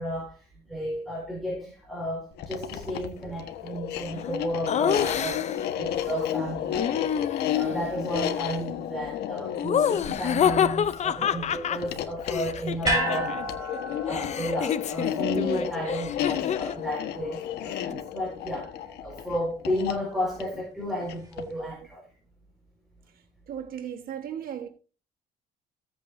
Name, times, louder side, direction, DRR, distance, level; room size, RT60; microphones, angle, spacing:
voice 1, 0.0-7.1 7.5-13.4 14.0-18.7 19.0-22.0, equal, ahead, 5.1 m, -33 dB
sound 1, 2.3-21.6, left 10 dB, 75° left, 1.5 m, -32 dB
Laughter, 4.7-5.7 6.7-7.8 9.6-13.4 13.7-16.8, left 8 dB, 40° left, 0.7 m, -28 dB
sound 2, 12.8-17.2 17.5-17.6, right 1 dB, 20° right, 5.5 m, -32 dB
voice 2, 23.5-24.7, right 9 dB, 60° right, 1.5 m, -35 dB
16.0 x 8.4 x 2.7 m
cardioid pair, 110°, 17 cm